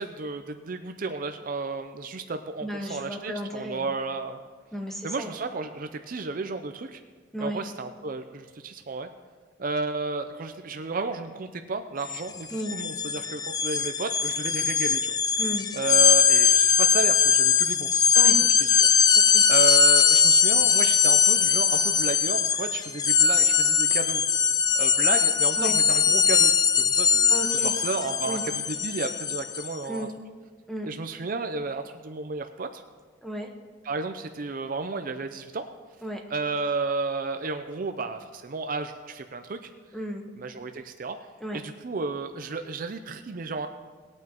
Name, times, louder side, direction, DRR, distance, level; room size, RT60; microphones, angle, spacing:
voice 1, 0.0-4.4 5.0-7.0 7.4-9.1 9.6-15.2 15.7-18.1 18.7-18.9 19.5-24.2 24.8-28.4 28.8-30.1 30.8-32.8 33.8-35.6 36.3-39.7 40.4-41.2 41.5-43.7, right 3 dB, 45° right, 7 dB, 0.5 m, -32 dB
voice 2, 2.6-3.9 4.7-5.4 7.3-7.6 12.5-12.7 15.4-15.7 18.1-18.4 19.1-19.5 25.6-25.8 27.3-27.7 28.3-28.4 29.8-30.1 30.7-30.9 33.2-33.5 36.0-36.2 39.9-40.2 41.4-41.6, right 1 dB, ahead, 2 dB, 1.1 m, -34 dB
sound 1, 12.0-12.2 12.5-29.7, left 6 dB, 20° left, 0.3 m, -21 dB
19.5 x 9.0 x 3.0 m, 1.5 s
head